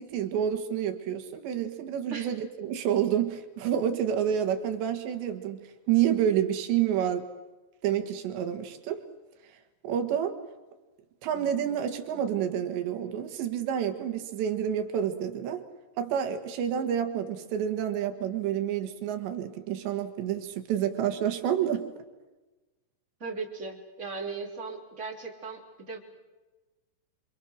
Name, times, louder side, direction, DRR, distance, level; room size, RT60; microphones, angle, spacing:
voice 1, 0.0-7.3 7.8-9.0 9.8-10.4 11.2-15.6 16.0-21.9, right 9 dB, 65° right, 6 dB, 3.6 m, -29 dB
voice 2, 23.2-26.0, right 4 dB, 15° right, 0 dB, 2.9 m, -37 dB
27.0 x 26.5 x 6.4 m, 1.2 s
omnidirectional pair, 5.8 m